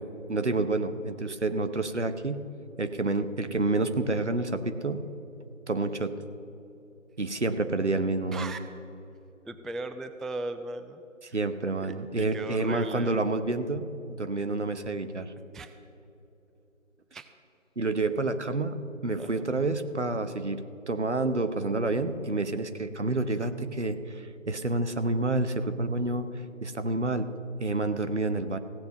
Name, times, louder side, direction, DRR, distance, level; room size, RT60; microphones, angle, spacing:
voice 1, 0.3-2.4 2.8-5.0 5.7-6.2 7.2-8.5 11.2-15.3 17.8-26.3 26.6-27.3 27.6-28.6, right 2 dB, 60° right, 10 dB, 0.9 m, -29 dB
voice 2, 9.4-11.0 11.3-11.4 12.2-13.2 15.5-15.7 17.1-17.3 19.2-19.5, right 2 dB, ahead, 8 dB, 0.3 m, -37 dB
16.0 x 7.5 x 6.5 m, 2.9 s
figure-of-eight pair, 170°, 39 cm